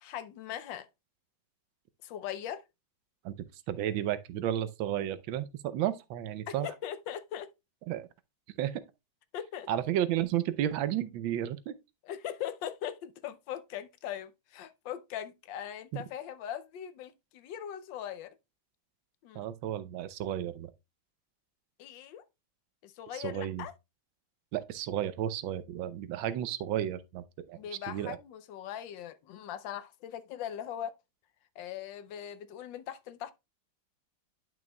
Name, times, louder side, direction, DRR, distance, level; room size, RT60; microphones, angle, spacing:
voice 1, 0.0-0.9 2.0-2.6 6.5-7.5 9.3-9.7 12.0-18.4 19.2-19.5 21.8-22.2 22.8-23.7 27.5-30.9 31.6-33.3, left 10 dB, 75° left, 1.3 m, -40 dB
voice 2, 3.7-6.7 7.9-8.1 8.6-8.8 9.7-11.8 15.9-16.0 19.3-20.7 23.1-23.6 24.5-27.6 27.9-28.2, right 11 dB, 85° right, 1.4 m, -32 dB
10.5 x 6.0 x 2.2 m
omnidirectional pair, 2.1 m